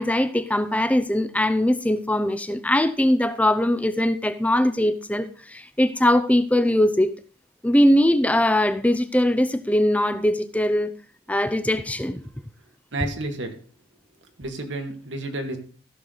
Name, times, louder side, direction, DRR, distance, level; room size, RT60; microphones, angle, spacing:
voice 1, 0.0-7.1 7.6-10.9 11.3-12.2, left 1 dB, 10° left, 0.6 m, -21 dB
voice 2, 12.9-13.5 14.4-15.6, right 2 dB, 85° right, 1.8 m, -30 dB
15.0 x 6.6 x 3.9 m
head